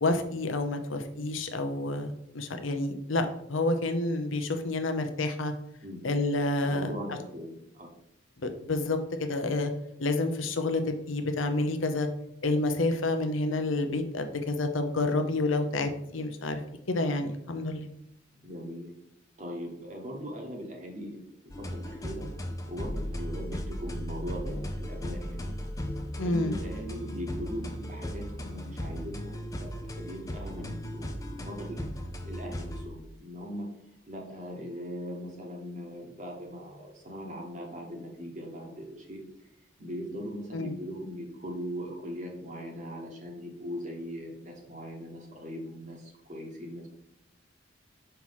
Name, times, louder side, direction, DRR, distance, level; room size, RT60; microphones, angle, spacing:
voice 1, 0.0-5.5 6.0-6.9 8.4-9.7 10.0-12.1 12.4-16.6 16.9-17.9 26.2-26.5 40.5-40.7, left 2 dB, 85° left, 7 dB, 0.7 m, -29 dB
voice 2, 6.6-7.9 18.4-18.9 19.4-21.2 21.4-22.2 22.7-25.6 25.9-31.9 32.2-33.7 34.0-39.2 39.8-46.9, equal, 40° right, 0 dB, 1.3 m, -40 dB
sound 1, 21.5-32.9, equal, 15° left, 0.5 m, -36 dB
5.7 x 3.1 x 5.5 m, 0.77 s
head